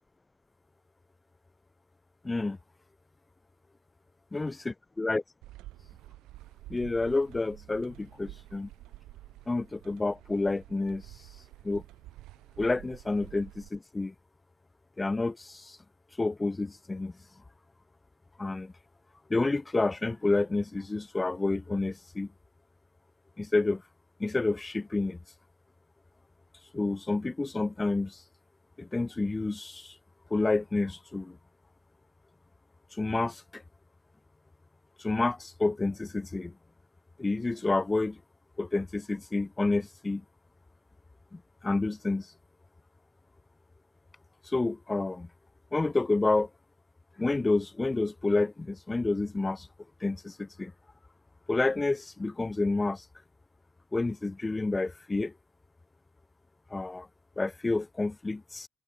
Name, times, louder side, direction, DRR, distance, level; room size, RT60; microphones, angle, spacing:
voice 1, 2.2-2.6 4.3-5.2 6.7-8.7 9.5-11.0 11.6-11.8 12.6-14.1 15.0-15.8 16.2-17.1 18.4-18.7 19.3-22.3 23.4-23.8 24.2-25.2 26.7-28.2 28.8-29.9 30.3-31.4 32.9-33.6 35.0-36.5 37.2-38.2 38.6-40.2 41.3-42.3 44.5-45.3 45.7-46.5 47.2-49.7 50.0-50.7 51.5-53.0 53.9-55.3 56.7-57.1 57.4-58.7, left 3 dB, 20° left, 1.1 m, -29 dB
sound 1, 5.4-13.7, right 17 dB, 90° right, 2.6 m, -49 dB
supercardioid pair, 75°, 0 cm